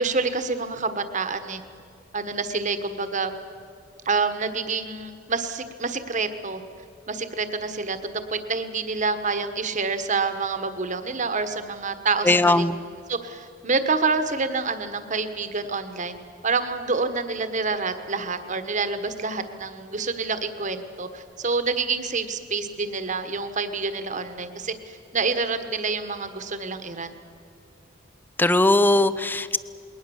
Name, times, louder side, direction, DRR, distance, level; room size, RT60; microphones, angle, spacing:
voice 1, 0.0-1.6 2.1-3.3 4.0-6.6 7.1-12.7 13.1-16.1 16.4-27.1, right 4 dB, 40° right, 9 dB, 1.4 m, -27 dB
voice 2, 12.3-12.8 28.4-29.6, left 2 dB, 10° left, 15 dB, 0.6 m, -19 dB
21.0 x 19.0 x 7.2 m, 2.5 s
head